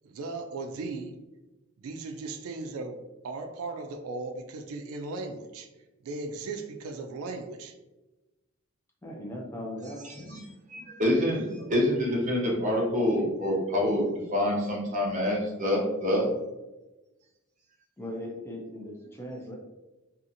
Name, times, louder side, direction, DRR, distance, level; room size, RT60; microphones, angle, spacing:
voice 1, 0.0-1.1 1.8-5.7 6.0-7.8, right 3 dB, 85° right, 6 dB, 0.3 m, -37 dB
voice 2, 9.0-10.3 18.0-19.6, left 1 dB, 10° left, -1 dB, 0.4 m, -39 dB
voice 3, 10.1-16.3, left 1 dB, 35° right, -2 dB, 0.7 m, -27 dB
2.7 x 2.4 x 2.5 m, 1.1 s
head